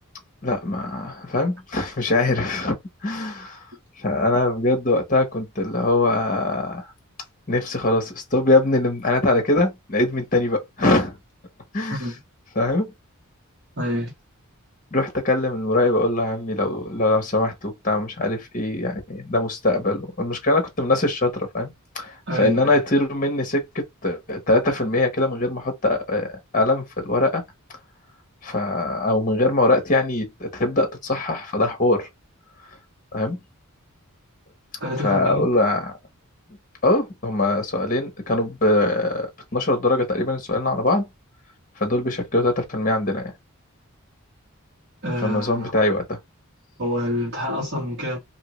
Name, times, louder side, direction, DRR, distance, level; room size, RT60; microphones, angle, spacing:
voice 1, 0.4-2.8 3.0-3.6 4.0-6.9 7.5-11.2 11.7-12.0 12.5-12.9 14.9-27.4 28.4-32.1 33.1-33.4 35.0-35.9 36.8-41.1 41.8-43.3 45.2-46.2, left 2 dB, 35° left, 1.0 m, -22 dB
voice 2, 13.8-14.1 22.3-22.8 34.8-35.4 45.0-45.7 46.8-48.2, left 1 dB, 50° right, 1.5 m, -27 dB
2.8 x 2.6 x 3.0 m
head